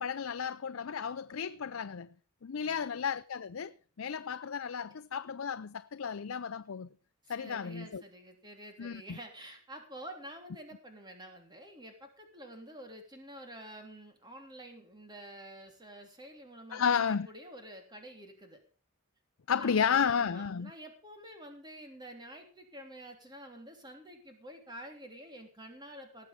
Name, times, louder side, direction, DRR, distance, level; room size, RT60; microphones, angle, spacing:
voice 1, 0.0-2.1 2.4-6.9 7.3-8.0 8.8-9.2 16.7-17.3 19.5-20.7, left 7 dB, 70° left, 0.5 m, -33 dB
voice 2, 2.6-3.0 7.2-18.6 19.5-26.3, right 1 dB, 20° right, 3.2 m, -49 dB
19.0 x 7.5 x 5.1 m
head